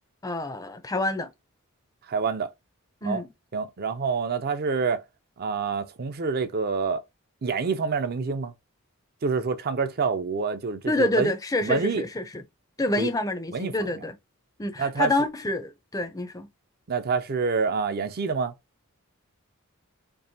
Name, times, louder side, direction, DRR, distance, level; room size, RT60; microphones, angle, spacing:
voice 1, 0.2-1.3 3.0-3.3 10.9-12.4 12.8-14.2 14.6-16.5, left 2 dB, 15° left, 0.5 m, -27 dB
voice 2, 2.1-2.5 3.0-3.2 3.5-5.0 5.4-7.0 7.4-8.5 9.2-11.3 11.6-12.0 13.0-13.1 13.5-13.9 14.8-15.1 16.9-18.5, right 5 dB, 45° right, 0.5 m, -27 dB
4.6 x 2.9 x 2.7 m
head